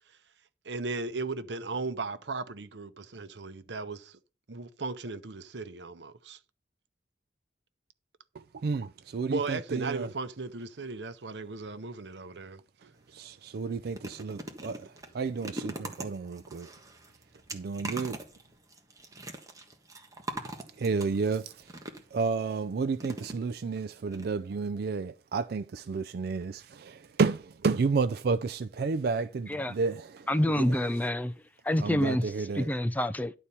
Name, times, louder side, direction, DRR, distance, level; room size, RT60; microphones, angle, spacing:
voice 1, 0.6-4.2 4.5-6.4 9.3-12.6, right 3 dB, 75° right, 0.9 m, -36 dB
voice 2, 8.5-10.1 12.8-16.7 17.5-18.2 20.8-21.7 22.1-30.3 30.6-30.8 31.8-32.7, right 4 dB, 60° right, 0.4 m, -31 dB
sound 1, 12.9-13.1 13.5-22.3 23.0-23.8 24.1-24.2 24.5-24.6, right 2 dB, 20° right, 1.5 m, -42 dB
voice 3, 30.3-31.3 31.6-32.2 32.6-33.3, left 1 dB, 10° left, 0.4 m, -27 dB
11.0 x 4.4 x 6.9 m
head